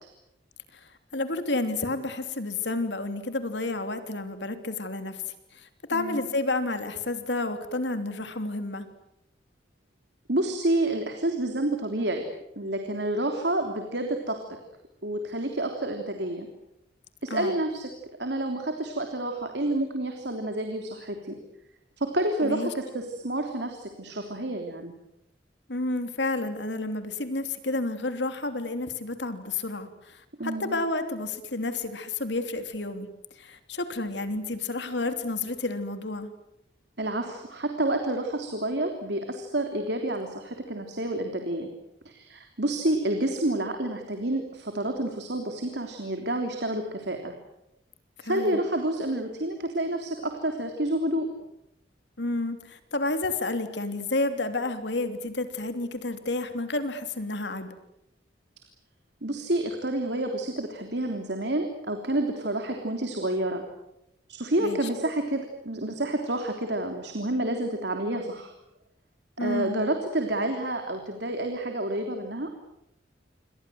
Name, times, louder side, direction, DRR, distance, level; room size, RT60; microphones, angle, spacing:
voice 1, 0.7-5.2 5.5-8.9 17.3-17.6 22.4-22.7 25.7-33.1 33.3-36.3 48.2-48.6 52.2-57.7 64.6-64.9 69.4-69.8, left 2 dB, 70° left, 8 dB, 3.2 m, -30 dB
voice 2, 5.9-6.2 10.3-12.2 12.5-14.4 15.0-16.5 17.2-17.9 18.2-21.3 22.0-24.9 30.4-30.7 37.0-41.7 42.0-47.3 48.2-51.3 59.2-63.6 64.3-68.5 69.4-72.5, right 1 dB, 65° right, 4 dB, 3.3 m, -29 dB
28.5 x 25.0 x 7.9 m, 0.85 s
head